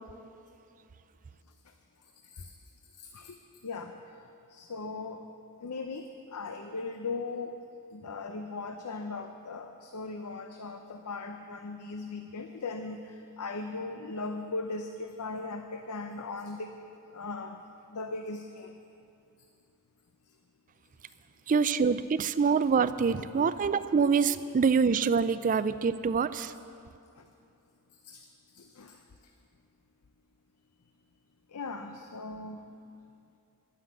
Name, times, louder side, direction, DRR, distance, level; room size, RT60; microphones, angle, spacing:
voice 1, 3.0-3.4 3.6-3.9 4.5-5.2 5.6-7.6 7.9-16.7 17.1-17.6 17.9-18.7 22.4-22.5 23.1-23.2 24.0-24.1 28.1-28.2 28.6-29.0 31.5-32.6, left 3 dB, 80° left, 6 dB, 0.6 m, -38 dB
voice 2, 21.5-26.5, right 5 dB, 35° right, 14 dB, 0.4 m, -25 dB
11.0 x 9.9 x 7.8 m, 2.6 s
head